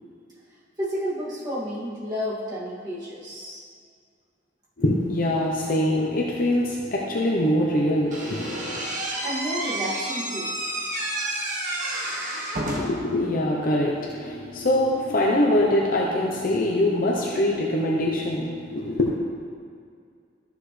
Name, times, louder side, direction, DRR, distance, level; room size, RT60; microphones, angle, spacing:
voice 1, 0.8-3.6 9.2-10.5, equal, 20° right, -9 dB, 2.4 m, -31 dB
voice 2, 4.8-8.9 12.7-19.2, left 1 dB, 50° left, -2 dB, 0.8 m, -23 dB
Slam / Squeak, 8.1-13.1, right 1 dB, 45° right, 1.6 m, -30 dB
13.5 x 6.6 x 3.3 m, 2.2 s
head